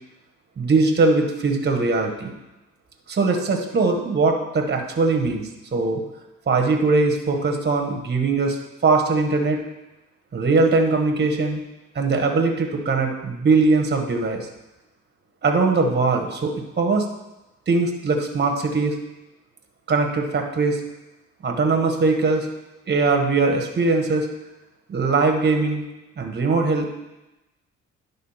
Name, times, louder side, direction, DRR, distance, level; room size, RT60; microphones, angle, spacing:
voice 1, 0.6-2.3 3.1-6.0 6.5-8.6 8.8-9.6 10.3-11.6 11.9-14.4 15.4-17.1 17.7-19.0 19.9-20.8 21.4-22.5 22.9-24.3 24.9-25.8 26.2-26.9, right 3 dB, 35° right, 3 dB, 1.4 m, -21 dB
10.5 x 3.8 x 5.7 m, 0.99 s
cardioid pair, 90°, 30 cm